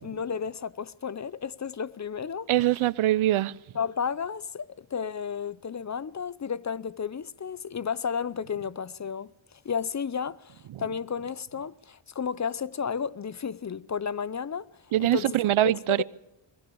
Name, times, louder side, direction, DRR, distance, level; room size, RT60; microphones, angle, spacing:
voice 1, 0.0-2.5 3.7-9.3 9.6-14.7 15.0-15.3 15.9-16.0, left 6 dB, 35° left, 0.7 m, -32 dB
voice 2, 2.5-3.5 10.7-10.8 14.9-16.0, right 14 dB, 70° right, 0.8 m, -23 dB
22.0 x 20.0 x 7.1 m
cardioid pair, 60°, 50 cm